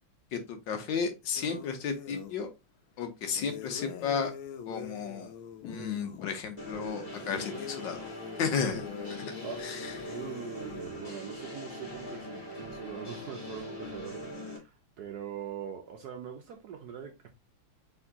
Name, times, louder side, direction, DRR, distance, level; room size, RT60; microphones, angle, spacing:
voice 1, 0.3-2.5 3.0-4.3 4.7-5.3 5.6-8.1 8.4-8.9 9.2-9.3 9.6-10.2, left 6 dB, 70° left, 1.4 m, -33 dB
sound 1, 1.4-2.4 3.3-6.3 7.1-10.9, left 8 dB, 85° left, 1.5 m, -44 dB
sound 2, 6.6-14.6, equal, 25° left, 1.5 m, -42 dB
voice 2, 10.1-17.3, right 8 dB, 70° right, 1.0 m, -42 dB
4.3 x 3.7 x 2.8 m
omnidirectional pair, 2.2 m